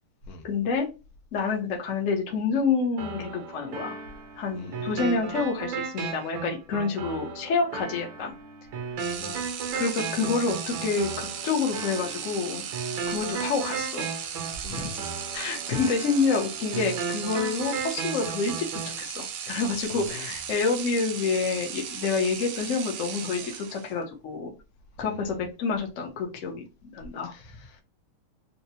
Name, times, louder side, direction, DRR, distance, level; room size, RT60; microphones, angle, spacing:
voice 1, 0.4-0.9 1.3-4.0 4.4-8.3 9.7-12.6 13.1-14.1 14.7-14.9 15.3-18.7 19.0-24.5 25.0-27.3, left 4 dB, 60° left, 0.8 m, -28 dB
sound 1, 3.0-19.0, right 5 dB, 70° right, 1.5 m, -35 dB
voice 2, 4.5-5.0 9.0-9.5 14.6-15.1 19.9-20.3 25.0-25.4 27.2-27.8, left 3 dB, 80° left, 1.4 m, -44 dB
sound 2, 9.0-24.0, right 8 dB, 90° right, 0.8 m, -36 dB
4.1 x 2.1 x 2.7 m
omnidirectional pair, 2.4 m